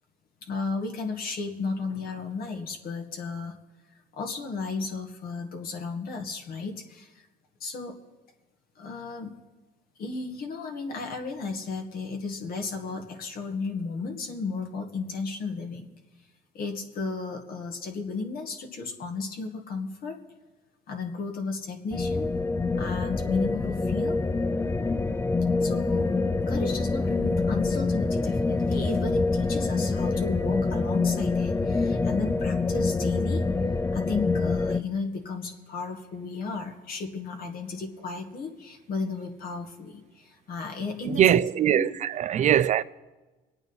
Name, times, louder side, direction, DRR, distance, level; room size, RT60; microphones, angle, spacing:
voice 1, 0.4-3.5 4.1-7.3 7.6-8.0 8.8-9.3 10.0-15.9 16.5-20.2 20.9-22.3 22.7-24.2 25.6-26.1 26.5-33.5 33.9-41.2 41.7-41.9, left 4 dB, 60° left, 1.9 m, -34 dB
sound 1, 21.9-34.8, left 3 dB, 15° left, 0.5 m, -26 dB
voice 2, 41.0-42.8, right 10 dB, 45° right, 0.5 m, -22 dB
24.5 x 8.9 x 4.1 m
cardioid pair, 110°, 17 cm